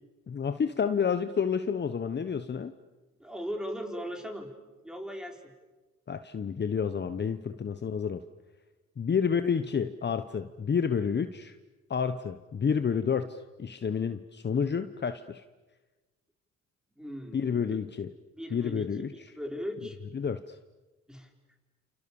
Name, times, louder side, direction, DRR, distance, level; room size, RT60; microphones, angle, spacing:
voice 1, 0.3-2.7 6.1-8.2 9.0-11.5 11.9-15.4 17.3-18.1 18.5-19.1 20.1-20.6, left 6 dB, 35° left, 10 dB, 1.1 m, -29 dB
voice 2, 3.2-4.5 4.8-5.5 17.0-17.8 18.3-20.0 21.1-21.3, equal, ahead, 3 dB, 5.1 m, -38 dB
29.0 x 29.0 x 7.1 m, 1.2 s
cardioid pair, 90°, 30 cm